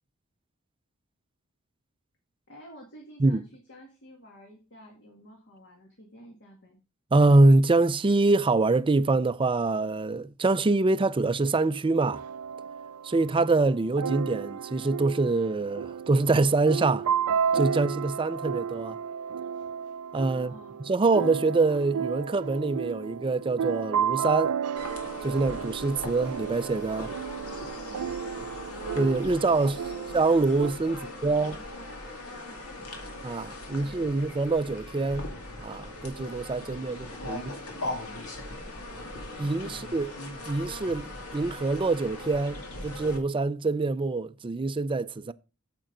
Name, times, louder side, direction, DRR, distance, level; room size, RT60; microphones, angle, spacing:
voice 1, 2.5-6.8 20.3-20.8 27.4-28.8 29.5-30.1 30.9-33.1 33.4-34.2 36.6-39.8, equal, 55° left, 1.9 m, -51 dB
voice 2, 7.1-12.2 13.0-17.1 17.5-19.0 20.1-20.5 20.9-24.6 25.2-27.1 29.0-29.8 30.1-31.5 33.2-35.3 35.6-37.4 39.4-40.1 40.5-45.3, right 3 dB, 25° right, 0.4 m, -25 dB
sound 1, 12.0-30.7, right 7 dB, 90° right, 0.4 m, -33 dB
sound 2, 24.8-43.2, left 1 dB, 80° left, 2.2 m, -40 dB
9.0 x 7.6 x 3.8 m
head